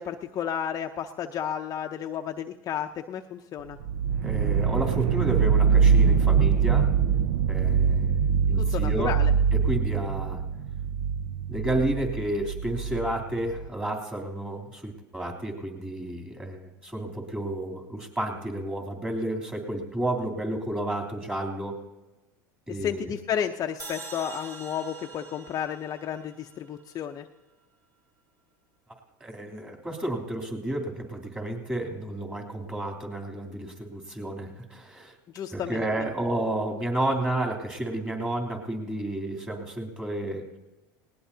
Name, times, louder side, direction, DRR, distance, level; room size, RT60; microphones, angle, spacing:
voice 1, 0.0-3.8 8.6-9.3 22.7-27.3 35.3-35.8, left 9 dB, 35° left, 4 dB, 0.7 m, -32 dB
sound 1, 3.8-13.7, right 6 dB, 65° right, 0.6 m, -23 dB
voice 2, 4.2-6.9 7.5-9.1 9.5-10.4 11.5-21.8 22.7-23.1 29.2-35.1 35.5-40.5, right 1 dB, 10° right, 1 dB, 3.1 m, -31 dB
sound 2, 23.8-27.0, right 3 dB, 40° right, 3.7 m, -44 dB
19.5 x 18.5 x 2.8 m, 1.1 s
supercardioid pair, 115°, 10 cm